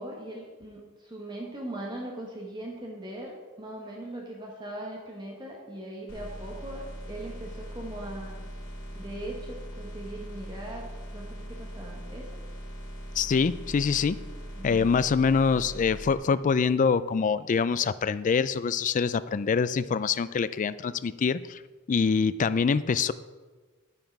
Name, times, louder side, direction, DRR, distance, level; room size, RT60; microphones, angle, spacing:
voice 1, 0.0-3.3 3.6-8.4 8.9-12.3 14.6-15.0, right 1 dB, 20° right, -1 dB, 1.3 m, -40 dB
sound 1, 6.1-16.1, equal, 75° left, 2.9 m, -40 dB
voice 2, 13.2-14.2 14.6-21.6 21.9-23.1, left 5 dB, 35° left, 15 dB, 0.3 m, -25 dB
9.3 x 9.0 x 4.7 m, 1.3 s
head